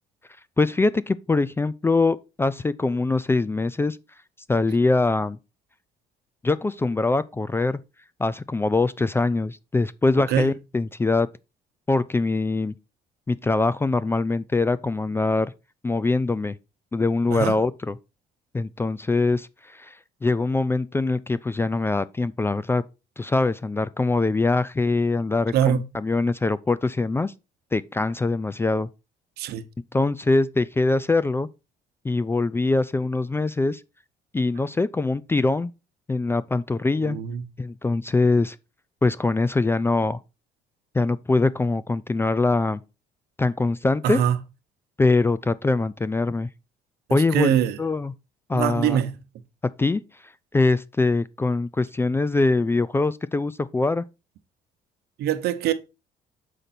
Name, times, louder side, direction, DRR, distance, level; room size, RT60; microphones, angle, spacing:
voice 1, 0.6-4.0 4.5-5.4 6.4-7.8 8.2-11.3 11.9-12.7 13.3-15.5 15.8-16.5 16.9-18.0 18.5-20.0 20.2-22.8 23.2-27.3 27.7-28.9 29.9-31.5 32.0-33.8 34.3-35.7 36.1-37.2 37.6-38.6 39.0-40.2 40.9-42.8 43.4-44.2 45.0-46.5 47.1-48.1 48.5-49.0 49.8-50.0 50.5-54.0, left 3 dB, 15° left, 0.3 m, -23 dB
voice 2, 25.5-25.8 29.4-29.6 37.0-37.4 44.0-44.4 47.1-47.8 48.5-49.2 55.2-55.7, right 9 dB, 75° right, 0.8 m, -23 dB
6.7 x 5.0 x 4.2 m
cardioid pair, 110°, 17 cm